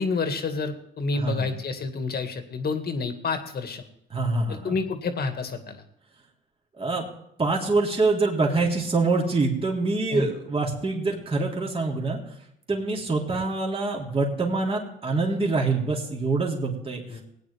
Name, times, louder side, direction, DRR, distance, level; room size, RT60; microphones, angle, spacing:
voice 1, 0.0-3.8 4.5-5.8 10.1-10.3 17.1-17.2, left 4 dB, 50° left, 7 dB, 2.0 m, -29 dB
voice 2, 1.1-1.5 4.1-4.7 6.8-7.1 7.4-12.2 12.7-17.0, right 3 dB, 30° right, -2 dB, 3.3 m, -25 dB
18.0 x 9.6 x 3.6 m, 0.76 s
cardioid pair, 90°, 20 cm